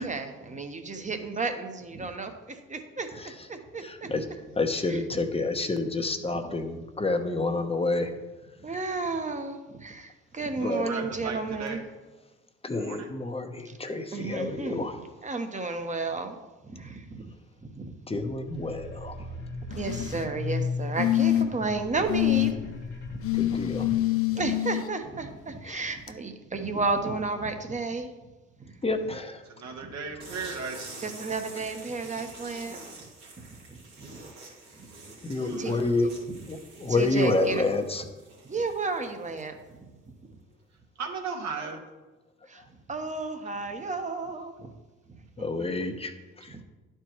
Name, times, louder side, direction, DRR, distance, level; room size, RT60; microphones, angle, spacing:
voice 1, 0.0-3.1 3.5-4.1 4.9-5.0 8.6-11.8 13.6-13.7 14.1-14.8 15.2-16.4 16.6-17.2 17.6-18.2 19.7-22.7 23.1-23.2 23.9-24.0 24.3-28.1 28.6-28.7 29.8-29.9 31.0-32.8 33.7-34.2 34.8-34.9 35.4-35.7 36.9-37.6 38.4-39.6 40.3-40.4 42.5-42.6 42.9-44.7 45.4-45.9 46.5-46.6, right 3 dB, 25° right, 6 dB, 1.1 m, -33 dB
voice 2, 3.8-4.3 4.6-8.1 10.6-10.9 12.6-15.0 18.1-19.3 23.3-23.9 25.7-25.9 28.8-29.4 35.2-36.1 36.5-38.0 45.4-46.6, left 2 dB, 20° left, 6 dB, 1.0 m, -29 dB
voice 3, 10.7-11.8 12.8-13.0 29.6-30.9 35.4-35.8 41.0-41.8, right 5 dB, 65° right, 1 dB, 1.6 m, -36 dB
sound 1, 18.5-24.0, left 4 dB, 85° left, 1.3 m, -36 dB
sound 2, 19.7-20.3 21.0-21.7 22.1-22.5 23.2-24.8 26.1-26.2, left 14 dB, 50° left, 0.5 m, -25 dB
sound 3, 30.2-39.7, right 2 dB, 85° right, 2.3 m, -47 dB
11.0 x 4.6 x 3.1 m, 1.2 s
hypercardioid pair, 55°, 30 cm